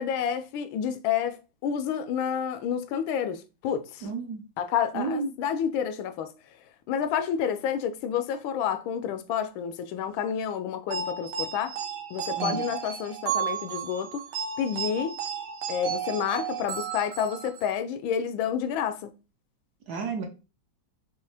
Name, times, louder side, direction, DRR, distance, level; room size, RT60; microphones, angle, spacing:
voice 1, 0.0-4.1 4.6-6.3 6.9-11.8 12.1-14.2 14.6-15.1 15.7-19.1, left 8 dB, 80° left, 1.3 m, -29 dB
voice 2, 4.0-4.4 4.9-5.3 12.4-12.7 19.9-20.2, right 4 dB, 65° right, 1.1 m, -31 dB
sound 1, 10.9-17.8, right 7 dB, 90° right, 1.6 m, -33 dB
5.5 x 2.8 x 3.3 m
omnidirectional pair, 2.2 m